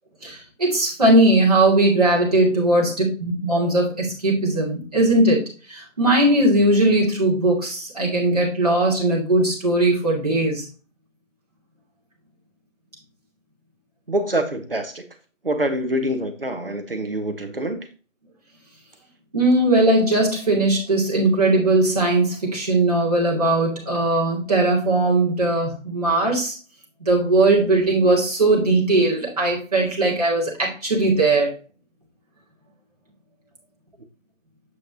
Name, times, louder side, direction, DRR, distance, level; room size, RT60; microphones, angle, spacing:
voice 1, 0.2-5.4 5.7-10.6 19.3-26.5 27.0-31.5, right 2 dB, 30° right, 2.5 m, -19 dB
voice 2, 14.1-15.0 15.4-17.8, right 1 dB, 45° right, 1.3 m, -25 dB
8.1 x 6.5 x 2.8 m
figure-of-eight pair, 165°, 39 cm